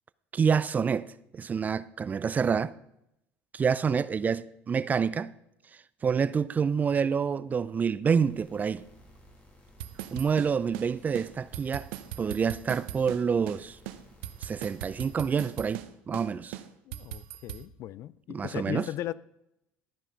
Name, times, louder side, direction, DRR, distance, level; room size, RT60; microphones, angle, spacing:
voice 1, 0.3-2.7 3.5-5.3 6.0-8.8 10.1-11.9 12.2-13.8 14.4-16.6 18.3-18.8, right 6 dB, 30° right, 0.4 m, -27 dB
sound 1, 8.0-15.2, left 1 dB, 25° left, 2.3 m, -57 dB
sound 2, 9.8-10.9 11.1-11.3 11.5-13.2 13.5-13.6 13.9-15.9 16.1-16.3 16.5-17.6, right 12 dB, 80° right, 0.7 m, -39 dB
voice 2, 16.9-19.1, left 13 dB, 55° left, 0.4 m, -37 dB
12.5 x 5.4 x 5.2 m
supercardioid pair, 90°, 6 cm